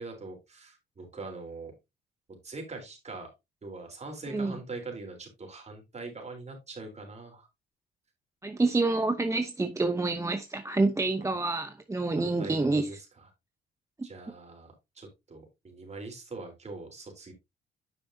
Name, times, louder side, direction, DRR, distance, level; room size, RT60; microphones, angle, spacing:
voice 1, 0.0-1.7 2.4-3.3 3.6-7.5 11.2-11.3 12.2-13.0 14.0-17.3, right 3 dB, 35° right, 3.9 m, -42 dB
voice 2, 8.4-13.0, right 3 dB, 15° right, 0.8 m, -28 dB
9.5 x 6.3 x 2.7 m
cardioid pair, 90°, 20 cm